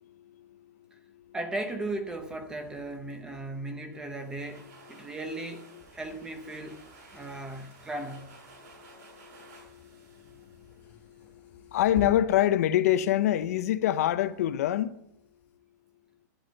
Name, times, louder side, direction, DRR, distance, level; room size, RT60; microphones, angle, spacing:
voice 1, 0.2-0.6 1.1-1.2 5.0-5.1 7.2-7.3 8.8-10.8 11.0-15.0, left 12 dB, 50° left, 0.6 m, -27 dB
voice 2, 1.3-6.8 7.1-8.4, right 2 dB, 5° right, 0.8 m, -37 dB
sound 1, 1.7-15.6, left 5 dB, 15° left, 1.4 m, -51 dB
sound 2, 3.9-11.4, right 2 dB, 50° right, 6.7 m, -54 dB
12.5 x 7.9 x 7.7 m
supercardioid pair, 175°, 10 cm